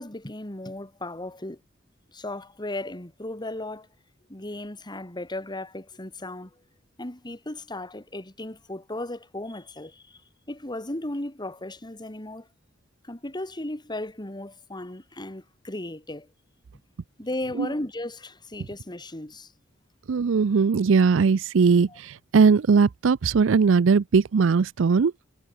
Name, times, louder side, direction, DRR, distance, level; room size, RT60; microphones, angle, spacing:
voice 1, 0.0-1.6 2.1-3.9 4.3-6.6 7.0-10.2 10.5-12.5 13.0-16.3 17.2-19.5 21.9-22.0, left 1 dB, 20° left, 2.4 m, -36 dB
voice 2, 20.1-25.1, right 5 dB, 70° right, 0.5 m, -19 dB
head